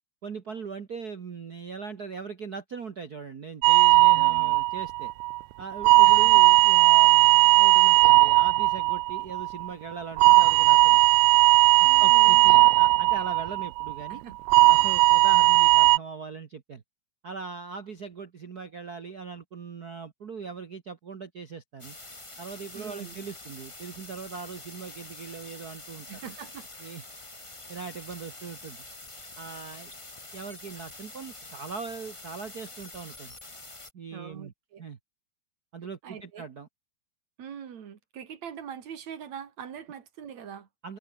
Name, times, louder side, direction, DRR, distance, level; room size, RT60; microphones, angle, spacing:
voice 1, 0.2-5.1 5.6-11.0 11.8-14.2 14.7-16.8 17.2-21.9 22.4-26.1 26.8-27.0 27.7-28.8 29.4-29.9 30.3-33.3 33.9-34.5 34.8-35.0 35.7-36.7 40.8-41.0, right 5 dB, 45° right, 1.2 m, -40 dB
sound 1, 3.6-5.4 5.8-9.7 10.2-14.1 14.5-16.0, right 21 dB, 80° right, 1.7 m, -18 dB
voice 2, 4.1-4.6 6.0-6.3 11.8-12.7 14.1-14.4 22.7-23.3 26.1-26.7 34.1-34.8 36.0-36.5 37.4-40.7, right 8 dB, 65° right, 3.5 m, -43 dB
sound 2, 21.8-33.9, left 2 dB, 10° left, 1.6 m, -46 dB
omnidirectional pair, 3.5 m